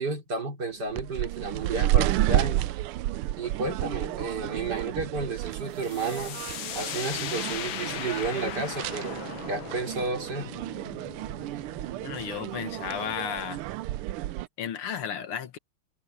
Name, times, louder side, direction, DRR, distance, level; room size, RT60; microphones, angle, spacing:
voice 1, 0.0-2.6 3.4-6.4 6.8-10.5, right 3 dB, 50° right, 4.0 m, -32 dB
sound 1, 0.9-14.5, right 14 dB, 85° right, 1.5 m, -31 dB
sound 2, 5.8-13.4, left 10 dB, 65° left, 1.6 m, -38 dB
voice 2, 12.0-13.6 14.6-15.6, left 8 dB, 80° left, 2.3 m, -33 dB
omnidirectional pair, 2.4 m